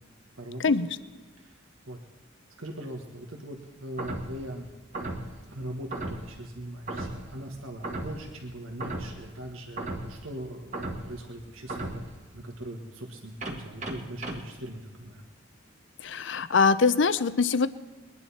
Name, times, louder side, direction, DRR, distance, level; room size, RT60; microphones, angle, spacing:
voice 1, 0.4-0.8 1.4-1.6 1.9-2.0 2.6-4.7 5.5-12.0 12.3-15.2, right 1 dB, 85° right, 1 dB, 1.7 m, -40 dB
sound 1, 4.0-4.4 4.9-5.4 5.9-6.3 6.9-7.3 7.8-8.2 8.8-9.2 9.8-10.2 10.7-11.2 11.7-12.1 13.4-14.4, right 2 dB, 35° right, 1.8 m, -35 dB
voice 2, 16.0-17.7, left 4 dB, 60° left, 14 dB, 0.6 m, -23 dB
22.5 x 10.5 x 4.3 m, 1.3 s
head